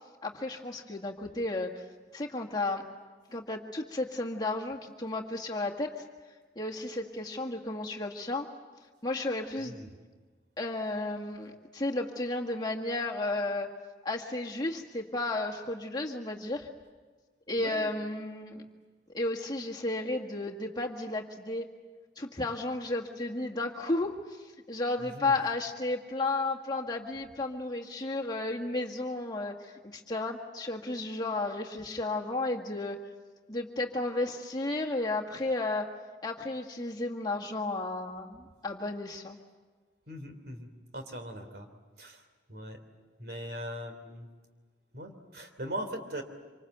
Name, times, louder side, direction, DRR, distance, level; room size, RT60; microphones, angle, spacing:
voice 1, 0.2-1.8 2.1-2.8 3.3-6.0 6.6-8.5 9.0-9.8 10.6-13.7 14.0-16.7 17.5-18.6 19.1-21.7 22.2-33.0 33.5-35.9 36.2-39.4, left 2 dB, 20° left, 0 dB, 1.8 m, -33 dB
voice 2, 9.6-9.9 17.6-17.9 25.0-25.4 40.1-41.7 42.0-42.8 43.2-44.3 44.9-46.2, equal, 60° right, 6 dB, 3.3 m, -40 dB
26.5 x 26.0 x 8.0 m, 1.4 s
head